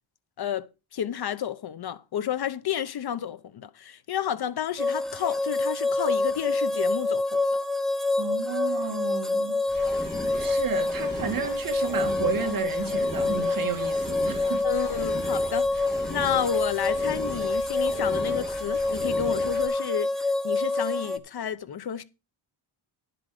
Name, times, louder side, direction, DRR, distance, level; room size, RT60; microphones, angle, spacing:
voice 1, 0.9-7.4 14.6-15.7 16.1-22.0, left 9 dB, 50° left, 0.8 m, -31 dB
sound 1, 4.8-21.2, left 2 dB, ahead, 0.9 m, -27 dB
voice 2, 8.2-9.6 9.8-10.0 10.4-14.6, right 6 dB, 45° right, 2.1 m, -32 dB
sound 2, 9.7-19.7, left 1 dB, 20° left, 5.1 m, -39 dB
11.5 x 7.7 x 5.0 m
wide cardioid pair, 150°, 48 cm